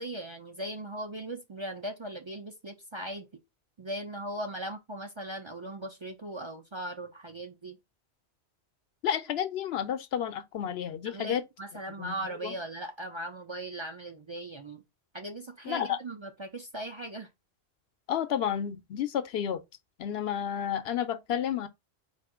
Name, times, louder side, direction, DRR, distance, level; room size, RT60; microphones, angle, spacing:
voice 1, 0.0-3.3 3.8-7.8 11.0-14.8 15.1-17.3, right 1 dB, 35° right, 0.5 m, -39 dB
voice 2, 9.0-11.4 12.0-12.1 12.4-12.5 15.7-16.0 18.1-19.6 20.0-21.7, left 9 dB, 70° left, 0.8 m, -31 dB
4.2 x 2.6 x 4.8 m
omnidirectional pair, 1.1 m